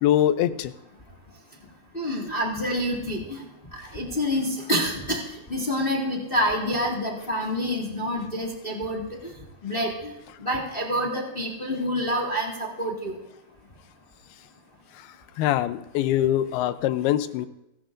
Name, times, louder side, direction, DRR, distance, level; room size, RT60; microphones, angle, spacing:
voice 1, 0.0-0.7 15.0-15.1 15.4-17.5, left 12 dB, 90° left, 12 dB, 2.7 m, -23 dB
voice 2, 1.9-3.4 3.9-5.2 5.5-9.0 9.6-10.1 10.4-13.2, equal, 25° left, -1 dB, 1.4 m, -27 dB
29.5 x 11.5 x 2.6 m, 0.87 s
omnidirectional pair, 4.4 m